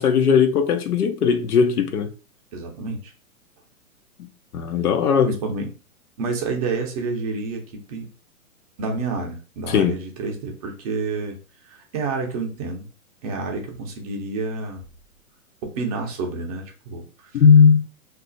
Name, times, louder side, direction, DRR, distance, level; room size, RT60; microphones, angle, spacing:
voice 1, 0.0-2.1 4.2-4.3 4.5-5.3 9.7-9.9 17.3-17.8, left 6 dB, 85° left, 0.8 m, -17 dB
voice 2, 2.5-3.1 5.2-5.7 6.2-8.1 8.8-11.4 11.6-12.9 13.2-14.8 15.6-17.4, right 3 dB, 25° right, 0.6 m, -29 dB
2.4 x 2.0 x 3.8 m
hypercardioid pair, 140°, 43 cm